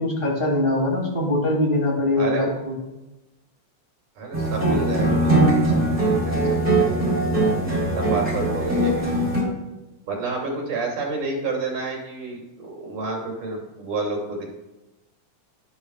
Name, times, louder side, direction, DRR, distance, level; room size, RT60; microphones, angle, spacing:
voice 1, 0.0-2.8, left 1 dB, 20° left, -3 dB, 2.5 m, -22 dB
voice 2, 2.1-2.5 4.2-5.4 5.7-5.9 6.3-7.2 7.9-8.9 10.1-14.4, right 3 dB, 90° right, -1 dB, 4.3 m, -29 dB
sound 1, 4.3-9.4, right 1 dB, 15° right, 3.5 m, -21 dB
12.5 x 11.5 x 2.4 m, 1.0 s
omnidirectional pair, 3.5 m